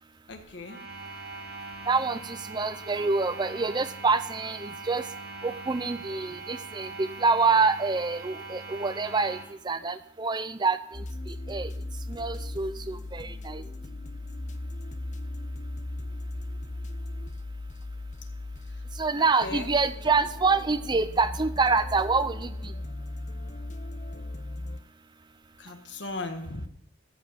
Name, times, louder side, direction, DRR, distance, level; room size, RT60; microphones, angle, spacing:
voice 1, 0.3-0.8 13.6-13.7 19.2-19.7 25.6-26.6, left 2 dB, 70° left, 5 dB, 1.5 m, -37 dB
sound 1, 0.6-9.4, right 3 dB, 55° right, 5.7 m, -41 dB
voice 2, 1.9-5.0 5.4-9.4 9.6-11.7 12.1-13.6 19.0-22.7, right 4 dB, 25° right, 12 dB, 0.5 m, -26 dB
sound 2, 10.9-24.8, left 2 dB, 40° left, 0.7 m, -37 dB
13.5 x 5.5 x 6.8 m, 0.72 s
head